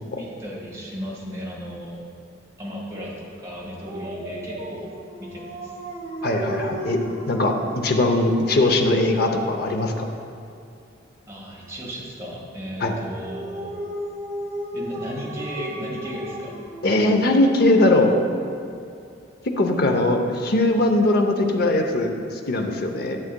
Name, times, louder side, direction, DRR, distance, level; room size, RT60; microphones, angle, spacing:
voice 1, 0.2-2.0 2.6-4.9 5.2-5.7 11.3-13.7 14.7-16.6, equal, 15° right, -5 dB, 1.5 m, -35 dB
Dog, 3.8-9.7 12.8-17.4, right 1 dB, 35° right, 0.9 m, -35 dB
voice 2, 6.2-7.0 7.3-10.1 12.8-12.9 16.8-18.1 19.6-23.2, left 2 dB, 55° left, 4 dB, 0.7 m, -20 dB
11.0 x 7.4 x 2.2 m, 2.5 s
head